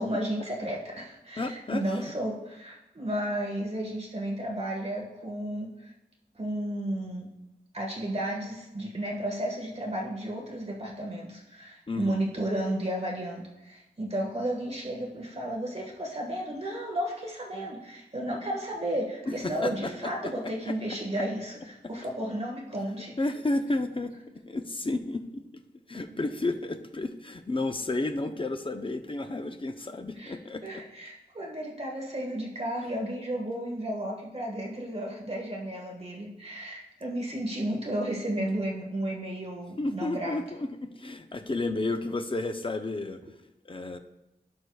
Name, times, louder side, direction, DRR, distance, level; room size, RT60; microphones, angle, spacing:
voice 1, 0.0-5.9 6.3-7.3 7.7-23.2 30.2-30.3 30.6-40.4, right 1 dB, 35° right, -1 dB, 1.7 m, -33 dB
voice 2, 1.4-2.0 11.9-12.2 19.3-20.7 23.2-24.1 24.5-25.4 25.9-30.8 39.8-43.2 43.6-44.0, left 2 dB, 30° left, 7 dB, 0.7 m, -32 dB
16.5 x 6.4 x 2.4 m, 0.95 s
wide cardioid pair, 85°, 18 cm